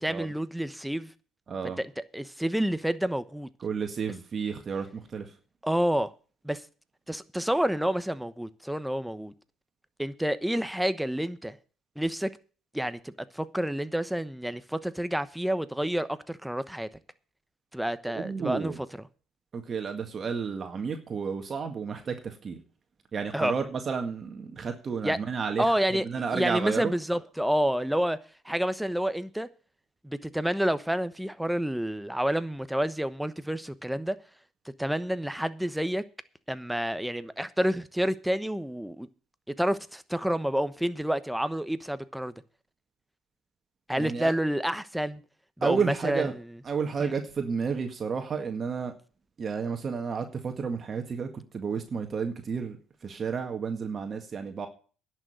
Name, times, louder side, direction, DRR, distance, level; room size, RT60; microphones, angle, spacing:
voice 1, 0.0-1.1 1.8-1.9 2.1-3.5 5.6-6.1 6.4-6.6 7.1-9.3 10.0-11.6 12.0-12.3 12.7-16.9 17.7-18.7 23.3-23.5 25.0-25.2 25.6-26.1 26.3-28.2 28.4-29.5 30.0-34.2 34.8-36.0 36.5-39.1 39.6-42.3 43.9-45.2 45.6-46.3 47.0-47.1, equal, 5° right, 1.0 m, -29 dB
voice 2, 1.5-1.8 3.6-5.3 18.1-18.8 19.5-22.6 23.1-26.9 44.0-44.3 45.6-46.3 46.6-48.9 49.4-54.7, right 5 dB, 40° right, 1.9 m, -32 dB
11.0 x 6.5 x 9.1 m
supercardioid pair, 80°, 0 cm